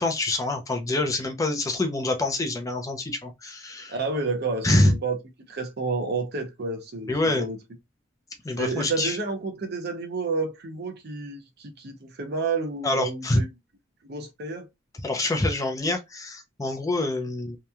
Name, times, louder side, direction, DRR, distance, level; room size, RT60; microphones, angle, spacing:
voice 1, 0.0-4.0 4.6-4.9 7.1-7.5 8.4-9.2 12.8-13.4 15.0-17.6, left 2 dB, 15° left, 0.4 m, -25 dB
voice 2, 3.9-5.2 5.5-7.6 8.6-13.5 14.0-14.7, right 3 dB, 55° right, 0.6 m, -30 dB
2.9 x 2.2 x 2.3 m
head